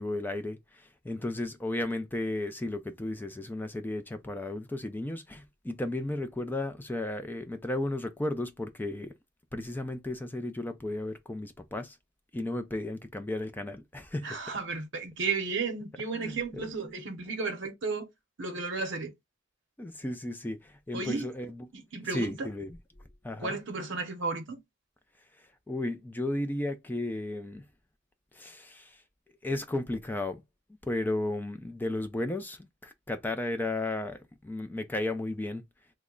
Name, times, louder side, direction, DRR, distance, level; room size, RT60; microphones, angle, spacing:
voice 1, 0.0-9.1 9.5-12.0 12.3-14.4 16.1-16.7 17.3-17.4 19.8-21.7 22.1-22.8 23.2-23.6 25.7-27.7 28.3-29.0 29.4-30.4 30.8-35.6, left 1 dB, 10° left, 0.3 m, -34 dB
voice 2, 14.2-18.1 18.4-19.1 20.9-21.3 21.7-22.5 23.4-24.6, right 4 dB, 65° right, 0.7 m, -33 dB
3.1 x 2.1 x 3.6 m
head